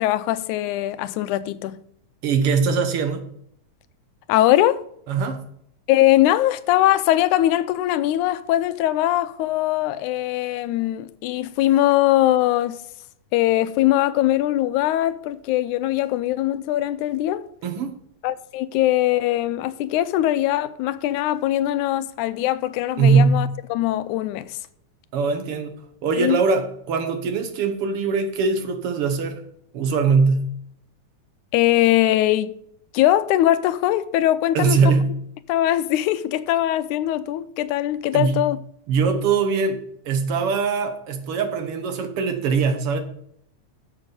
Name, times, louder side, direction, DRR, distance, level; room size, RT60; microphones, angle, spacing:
voice 1, 0.0-1.8 4.3-4.8 5.9-12.8 13.3-17.4 18.2-24.6 26.2-26.4 31.5-32.6 32.9-34.8 35.5-38.6, left 14 dB, 90° left, 2.0 m, -21 dB
voice 2, 2.2-3.2 5.1-5.4 17.6-18.0 23.0-23.4 25.1-25.7 26.0-29.4 29.7-30.5 34.5-35.1 38.1-38.4 38.9-39.8 40.1-43.0, right 5 dB, 60° right, 1.8 m, -21 dB
9.7 x 7.2 x 5.2 m
omnidirectional pair, 3.4 m